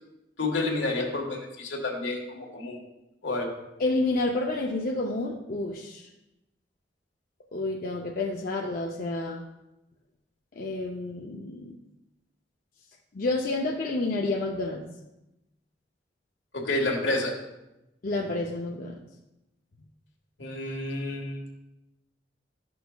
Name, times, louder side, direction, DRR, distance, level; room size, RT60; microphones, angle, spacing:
voice 1, 0.4-2.8 3.2-3.5 16.5-17.3 20.4-21.6, left 2 dB, 80° left, 1 dB, 1.4 m, -29 dB
voice 2, 3.8-6.1 7.5-9.4 10.6-11.8 13.1-14.8 18.0-19.0, left 2 dB, 50° left, 0 dB, 0.5 m, -29 dB
11.5 x 6.1 x 2.3 m, 0.94 s
head